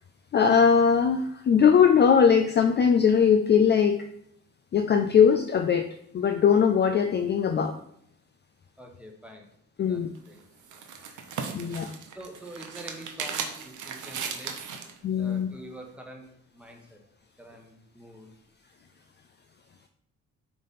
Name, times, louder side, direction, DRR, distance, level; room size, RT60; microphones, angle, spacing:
voice 1, 0.3-4.1 4.7-5.9 6.1-7.7 9.8-10.1 11.5-11.9 15.0-15.5, left 7 dB, 35° left, 7 dB, 0.4 m, -20 dB
voice 2, 8.8-9.5 9.9-10.4 11.6-11.7 12.1-14.5 15.2-16.3 16.5-17.0 17.4-18.3, right 1 dB, 5° right, 1 dB, 1.2 m, -45 dB
sound 1, 10.1-15.0, right 6 dB, 70° right, 0.9 m, -37 dB
7.4 x 3.5 x 4.2 m, 0.71 s
cardioid pair, 125°, 31 cm